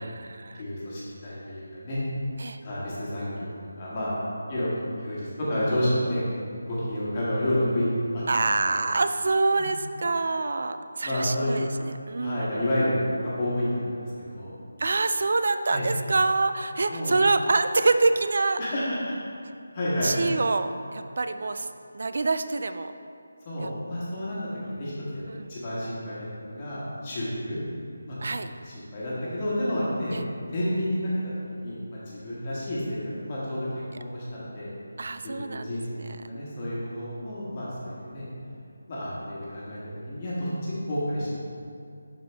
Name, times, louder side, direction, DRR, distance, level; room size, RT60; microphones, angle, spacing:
voice 1, 0.0-0.6 2.4-2.6 8.3-12.6 14.8-18.6 19.4-19.5 20.0-21.7 21.9-22.9 23.6-23.7 25.3-25.5 28.2-28.5 30.1-30.2 35.0-35.8, right 3 dB, 50° right, 10 dB, 0.3 m, -26 dB
voice 2, 0.6-2.0 2.6-4.2 4.5-4.7 5.0-6.3 6.6-8.2 8.6-8.8 11.0-11.5 12.2-14.5 15.7-15.8 16.9-17.1 18.6-19.1 19.7-20.1 23.4-24.4 24.7-27.6 28.0-28.3 28.6-30.2 30.5-31.0 31.5-33.7 34.0-34.7 35.2-38.2 38.9-39.8 40.1-41.3, left 1 dB, 20° left, -8 dB, 1.4 m, -30 dB
11.5 x 4.4 x 3.4 m, 2.5 s
figure-of-eight pair, 175°, 0 cm